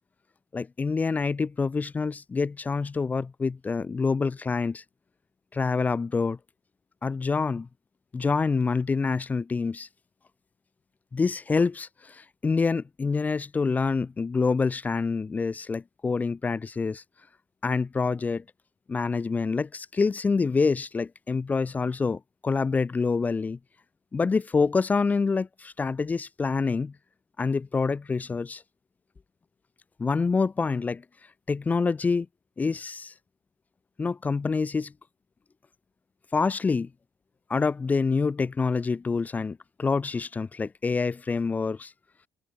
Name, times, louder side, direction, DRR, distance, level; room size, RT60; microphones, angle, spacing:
voice 1, 0.5-4.8 5.5-6.4 7.0-7.7 8.1-9.9 11.1-17.0 17.6-18.4 18.9-23.6 24.1-26.9 27.4-28.6 30.0-31.0 31.5-32.3 32.6-33.1 34.0-34.9 36.3-36.9 37.5-41.9, left 4 dB, 25° left, 2.3 m, -26 dB
open air
cardioid pair, 95°, 6 cm